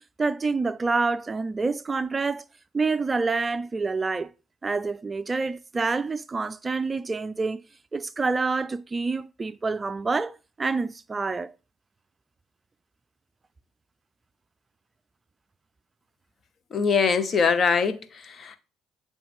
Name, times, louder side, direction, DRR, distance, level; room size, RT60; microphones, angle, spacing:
voice 1, 0.2-2.4 2.7-4.3 4.6-7.6 7.9-11.5, right 4 dB, 30° right, 0.3 m, -27 dB
voice 2, 16.7-18.6, left 5 dB, 45° left, 0.8 m, -23 dB
8.4 x 3.2 x 3.5 m
hypercardioid pair, 55°, 0 cm